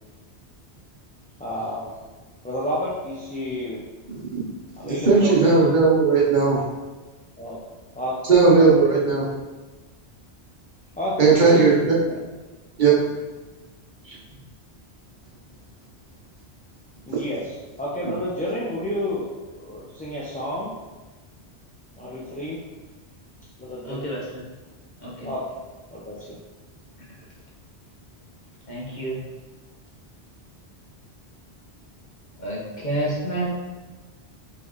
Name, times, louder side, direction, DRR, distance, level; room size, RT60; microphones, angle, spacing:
voice 1, 1.4-1.9 2.4-3.8 4.8-5.4 7.4-7.6 7.9-8.2 8.5-8.7 11.0-11.6 12.1-12.2 17.1-17.4 17.8-19.3 19.5-20.7 22.0-22.6 23.6-24.1 25.2-25.4 25.9-26.4, left 1 dB, 10° left, -8 dB, 0.4 m, -30 dB
voice 2, 4.8-6.6 8.3-9.3 11.2-12.0 12.8-13.0 14.0-14.2 17.1-17.2, right 4 dB, 50° right, -5 dB, 1.0 m, -17 dB
voice 3, 23.8-24.2 25.0-25.3 28.7-29.2 32.4-33.5, right 1 dB, 45° left, -5 dB, 1.2 m, -29 dB
4.5 x 3.3 x 3.0 m, 1.2 s
omnidirectional pair, 1.1 m